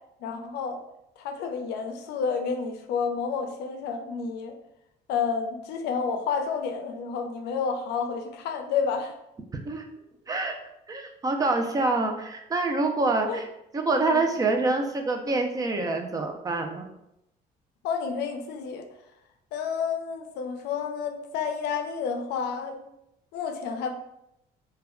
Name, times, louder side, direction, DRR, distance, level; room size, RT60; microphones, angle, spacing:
voice 1, 0.2-0.8 1.2-4.5 5.1-9.1 13.3-13.4 13.9-14.2 17.8-18.9 19.5-22.8 23.3-23.9, left 6 dB, 80° left, 5 dB, 0.4 m, -30 dB
voice 2, 10.3-10.6 10.9-13.5 13.7-16.9, right 3 dB, 20° right, 3 dB, 0.4 m, -26 dB
2.3 x 2.1 x 3.5 m, 0.83 s
cardioid pair, 110°, 17 cm